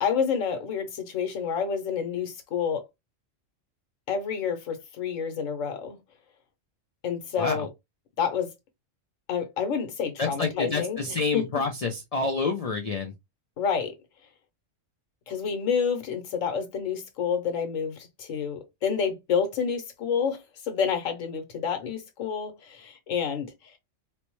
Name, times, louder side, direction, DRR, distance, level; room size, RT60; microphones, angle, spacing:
voice 1, 0.0-2.8 4.1-6.0 7.0-7.7 8.2-8.5 9.3-11.6 13.6-13.9 15.3-23.5, left 6 dB, 90° left, 1.2 m, -29 dB
voice 2, 10.2-13.1, left 4 dB, 60° left, 0.4 m, -28 dB
4.3 x 2.0 x 3.0 m
omnidirectional pair, 1.3 m